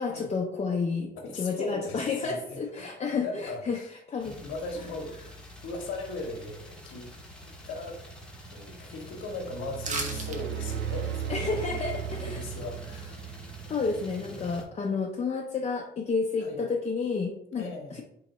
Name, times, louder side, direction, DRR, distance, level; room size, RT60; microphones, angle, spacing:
voice 1, 0.0-3.8 4.1-4.3 4.8-4.9 11.3-12.4 13.7-18.0, left 4 dB, 30° left, 0 dB, 0.5 m, -30 dB
voice 2, 1.2-2.9 3.2-3.9 4.2-5.2 5.6-7.1 7.4-8.0 8.5-11.8 12.1-13.2 14.2-14.5 16.4-16.6 17.6-18.0, left 2 dB, 75° left, 3 dB, 0.8 m, -39 dB
sound 1, 4.2-14.6, right 1 dB, 5° left, 0.9 m, -46 dB
sound 2, 9.4-14.0, right 9 dB, 65° right, 0.5 m, -36 dB
sound 3, 9.8-10.4 10.7-10.8, right 3 dB, 40° right, 0.8 m, -33 dB
3.0 x 2.8 x 4.0 m, 0.75 s
cardioid pair, 90°, 20 cm